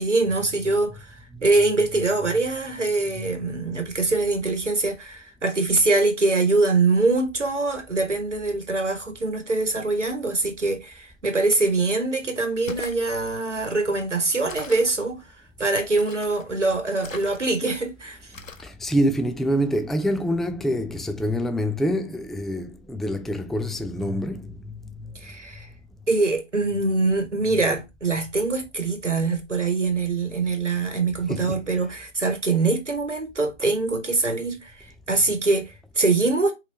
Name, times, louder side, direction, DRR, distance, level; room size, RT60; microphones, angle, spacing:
voice 1, 0.0-15.2 15.6-18.2 25.2-25.7 26.1-36.5, right 3 dB, 65° right, 1.6 m, -23 dB
sound 1, 12.5-13.0 14.5-15.0 16.0-16.5 17.0-17.7 18.3-18.7, left 4 dB, 80° left, 0.8 m, -39 dB
voice 2, 18.8-24.4 31.3-31.6, equal, ahead, 0.3 m, -25 dB
4.4 x 4.1 x 2.8 m
figure-of-eight pair, 175°, 39 cm